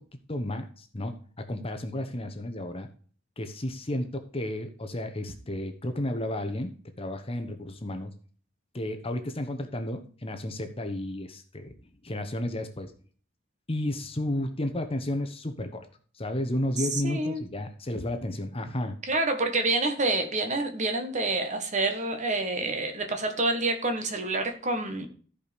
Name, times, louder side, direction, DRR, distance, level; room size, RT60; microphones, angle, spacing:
voice 1, 0.3-2.9 3.4-8.1 8.7-11.7 12.0-12.9 13.7-15.9 16.1-19.0, left 1 dB, 30° left, 7 dB, 1.1 m, -32 dB
voice 2, 16.8-17.4 19.1-25.1, right 2 dB, 35° right, 6 dB, 1.4 m, -28 dB
14.0 x 5.1 x 5.2 m, 0.43 s
head